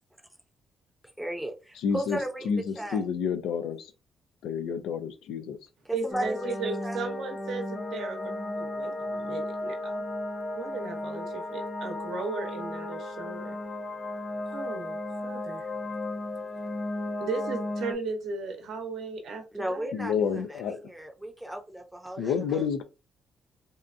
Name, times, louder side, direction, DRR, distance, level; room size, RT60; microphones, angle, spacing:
voice 1, 1.2-2.5 2.8-3.0 5.8-6.6 6.8-7.0 19.5-22.8, right 1 dB, 5° right, 0.6 m, -35 dB
voice 2, 1.8-2.2 2.5-3.9 4.4-5.6 19.9-20.8 22.2-22.8, left 6 dB, 85° left, 0.4 m, -29 dB
voice 3, 5.9-10.0 10.5-13.6 14.4-15.9 16.6-16.7 17.2-19.9, right 4 dB, 70° right, 0.7 m, -36 dB
sound 1, 6.1-17.9, left 1 dB, 35° left, 0.5 m, -34 dB
2.7 x 2.3 x 2.5 m
cardioid pair, 90°, 0 cm